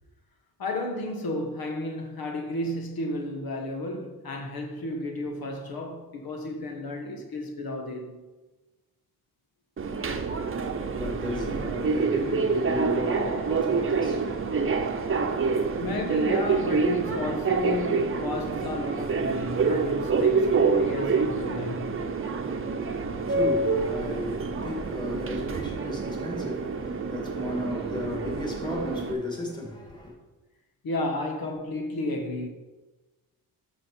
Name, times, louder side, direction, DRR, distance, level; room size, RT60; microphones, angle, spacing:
voice 1, 0.6-8.2 15.8-22.0 30.8-32.5, left 2 dB, 70° left, 1.4 m, -32 dB
Subway metro underground, 9.8-29.1, right 4 dB, 35° right, 0.9 m, -27 dB
voice 2, 10.7-15.3 23.0-30.2, left 2 dB, 10° left, 2.1 m, -35 dB
12.5 x 6.3 x 4.5 m
cardioid pair, 115°, 37 cm